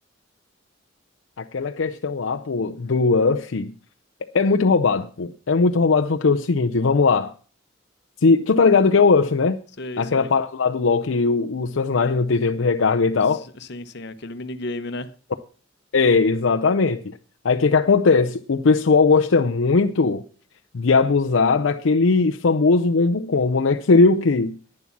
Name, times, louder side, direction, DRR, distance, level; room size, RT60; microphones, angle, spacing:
voice 1, 1.4-3.7 4.3-7.3 8.2-9.6 10.0-13.4 15.9-17.0 17.4-20.2 20.7-24.6, left 4 dB, 75° left, 0.6 m, -19 dB
voice 2, 9.8-10.3 13.3-15.1, left 2 dB, 55° left, 0.9 m, -33 dB
11.0 x 9.8 x 5.9 m
head